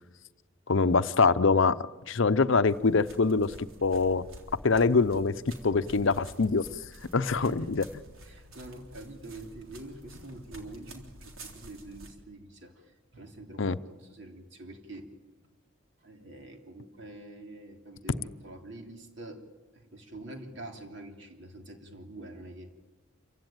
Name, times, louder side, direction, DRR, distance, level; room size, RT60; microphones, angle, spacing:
voice 1, 0.7-1.8 2.1-3.5 3.8-4.2 4.6-5.3 5.6-6.7 7.1-7.8 13.6-13.7, left 4 dB, 65° left, 13 dB, 0.7 m, -24 dB
sound 1, 2.7-12.1, right 1 dB, 70° right, 3.6 m, -49 dB
voice 2, 7.3-7.8 8.2-15.1 16.0-19.5 19.7-22.7, right 2 dB, 55° right, 3 dB, 3.1 m, -46 dB
27.5 x 16.0 x 9.1 m, 1.3 s
head